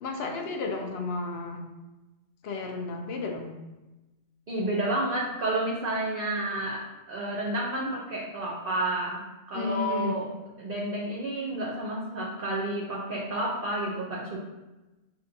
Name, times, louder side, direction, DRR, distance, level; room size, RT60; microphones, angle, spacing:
voice 1, 0.0-1.6 2.4-3.5 9.5-10.2, left 3 dB, 60° left, 3 dB, 0.8 m, -32 dB
voice 2, 4.5-9.2 9.5-10.3 10.6-14.4, right 1 dB, 55° right, -3 dB, 0.7 m, -30 dB
6.7 x 2.6 x 2.6 m, 1.1 s
omnidirectional pair, 1.3 m